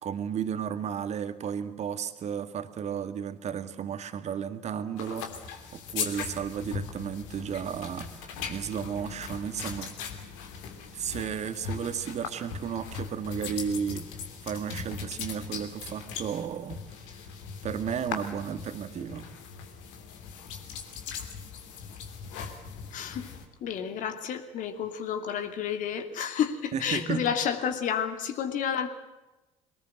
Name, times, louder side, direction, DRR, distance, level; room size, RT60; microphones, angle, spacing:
voice 1, 0.0-5.3 5.7-9.9 10.9-14.1 14.4-16.8 17.1-17.2 17.6-19.3 26.7-27.3, right 8 dB, 45° right, 10 dB, 2.1 m, -33 dB
sound 1, 5.0-23.4, left 6 dB, 70° left, 3.0 m, -39 dB
voice 2, 22.9-23.3 23.6-28.9, left 8 dB, 55° left, 8 dB, 2.7 m, -30 dB
23.0 x 19.5 x 8.0 m, 1.0 s
hypercardioid pair, 60°, 16 cm